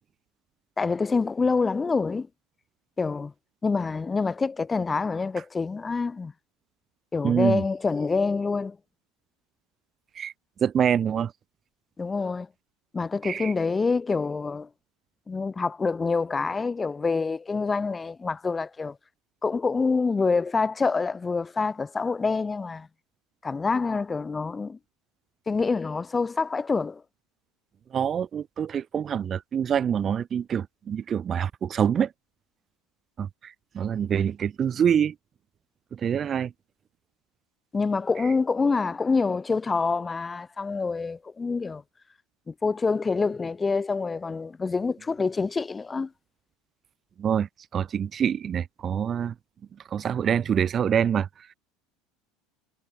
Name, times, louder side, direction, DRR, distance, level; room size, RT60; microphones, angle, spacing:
voice 1, 0.8-2.3 3.0-3.3 3.6-6.3 7.1-8.8 12.0-12.5 12.9-14.7 15.3-19.0 19.4-22.9 23.4-24.8 25.5-27.0 37.7-41.8 42.5-46.1, left 4 dB, 15° left, 0.9 m, -26 dB
voice 2, 7.2-7.6 10.1-10.3 10.6-11.3 13.2-13.5 27.9-32.1 33.2-35.1 35.9-36.5 47.2-49.3 49.9-51.5, right 8 dB, 30° right, 2.0 m, -26 dB
supercardioid pair, 120°, 0 cm